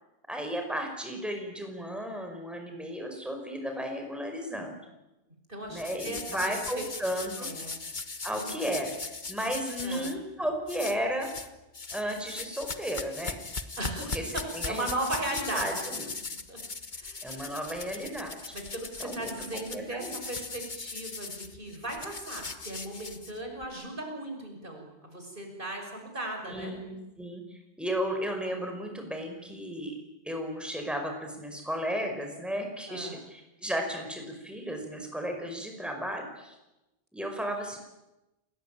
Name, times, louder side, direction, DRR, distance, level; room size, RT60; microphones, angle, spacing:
voice 1, 0.3-4.8 5.7-7.5 8.2-11.3 11.9-13.4 14.1-14.2 14.5-14.9 15.5-16.0 17.2-18.4 19.0-20.2 26.5-29.9 30.3-36.6 37.1-37.8, equal, ahead, 3 dB, 5.3 m, -34 dB
voice 2, 5.5-6.9 7.4-7.8 8.3-8.4 9.8-10.1 13.8-15.9 16.5-16.6 16.9-17.4 18.5-26.7 32.9-33.2, right 1 dB, 55° right, 2 dB, 6.2 m, -37 dB
sound 1, 5.8-10.1 10.7-11.5 11.7-23.6, left 4 dB, 50° left, 1.6 m, -39 dB
29.0 x 20.5 x 9.1 m, 0.99 s
omnidirectional pair, 1.0 m